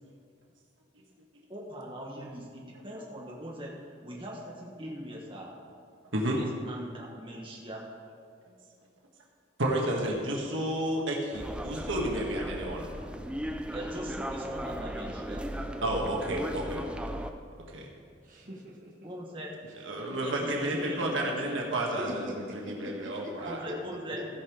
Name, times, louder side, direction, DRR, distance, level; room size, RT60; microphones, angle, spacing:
voice 1, 1.5-5.5 6.4-7.8 13.7-15.5 19.0-19.5 20.2-21.6 23.4-24.3, equal, 25° right, -3 dB, 1.5 m, -41 dB
voice 2, 9.6-12.9 15.8-16.8 17.7-17.9 19.8-22.1 22.7-23.6, right 1 dB, 80° right, -1 dB, 1.6 m, -31 dB
sound 1, 11.3-17.3, equal, 5° right, 0.4 m, -37 dB
voice 3, 18.2-19.1 20.1-20.2 22.0-23.3, equal, 40° right, -3 dB, 1.3 m, -42 dB
15.5 x 5.4 x 5.0 m, 2.2 s
head